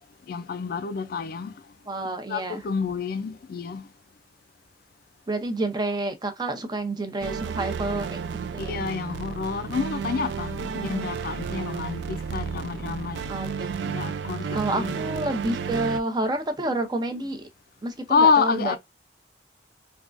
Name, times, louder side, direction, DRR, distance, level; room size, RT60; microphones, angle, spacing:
voice 1, 0.3-1.5 2.3-3.9 8.6-13.2 13.8-15.0 18.1-18.8, left 5 dB, 55° left, 0.3 m, -27 dB
voice 2, 1.9-2.6 5.3-8.9 10.8-11.1 13.3-13.7 14.5-17.5 17.8-18.8, right 2 dB, 25° right, 0.6 m, -29 dB
sound 1, 7.2-16.0, right 6 dB, 75° right, 0.3 m, -32 dB
3.5 x 2.3 x 2.4 m
head